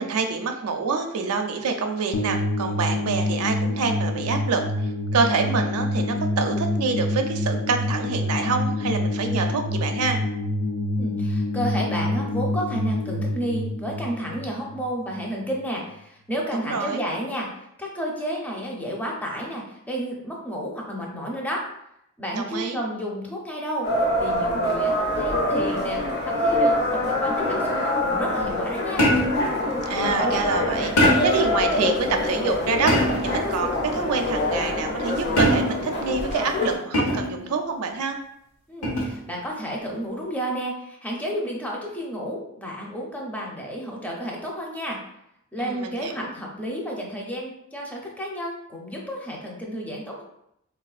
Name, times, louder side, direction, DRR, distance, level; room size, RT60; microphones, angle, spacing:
voice 1, 0.0-10.2 16.5-17.0 22.3-22.8 29.9-32.9 33.2-38.2 45.6-46.3, right 4 dB, 85° right, 4 dB, 0.5 m, -26 dB
sound 1, 2.1-15.2, left 1 dB, 70° left, 0.4 m, -27 dB
voice 2, 11.0-17.5 17.8-21.7 22.2-29.1 38.7-45.0 45.5-50.2, equal, 5° left, -2 dB, 0.6 m, -31 dB
sound 2, 23.8-36.8, left 1 dB, 50° left, 0.9 m, -25 dB
sound 3, 29.0-29.5 31.0-31.5 32.9-33.4 35.4-35.9 36.9-37.4 38.8-39.2, left 1 dB, 85° left, 0.9 m, -21 dB
4.0 x 2.3 x 2.4 m, 0.78 s
head